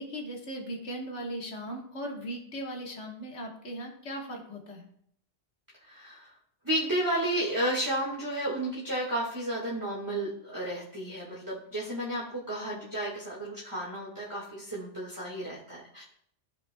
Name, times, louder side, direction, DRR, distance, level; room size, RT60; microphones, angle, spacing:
voice 1, 0.0-4.9, equal, 80° left, 1 dB, 1.7 m, -38 dB
voice 2, 5.8-6.3 6.6-16.0, right 1 dB, 15° right, -6 dB, 1.6 m, -32 dB
14.5 x 5.1 x 2.2 m, 0.66 s
omnidirectional pair, 1.2 m